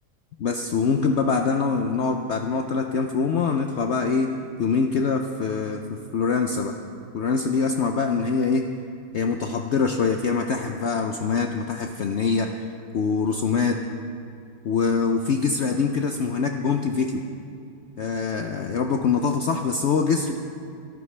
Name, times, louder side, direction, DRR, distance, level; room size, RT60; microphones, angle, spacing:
voice 1, 0.4-4.3 4.6-5.8 6.1-6.7 7.1-8.6 9.1-12.5 12.9-13.8 14.6-17.2 18.0-20.4, left 5 dB, 75° left, 5 dB, 0.6 m, -24 dB
23.5 x 12.5 x 3.3 m, 2.5 s
omnidirectional pair, 1.9 m